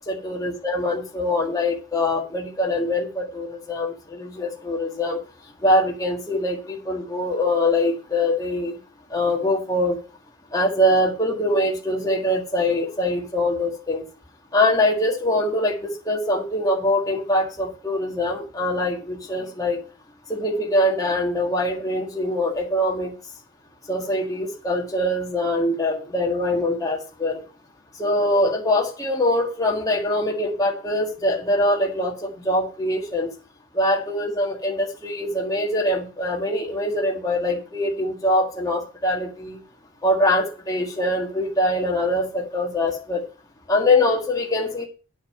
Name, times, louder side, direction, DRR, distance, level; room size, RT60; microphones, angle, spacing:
voice 1, 0.1-5.2 5.6-8.7 9.1-10.0 10.5-14.0 14.5-19.8 20.3-23.1 23.9-27.4 28.0-33.3 33.7-39.6 40.0-43.2 43.7-44.9, left 1 dB, 15° left, -1 dB, 1.8 m, -23 dB
8.7 x 5.6 x 7.7 m, 0.35 s
head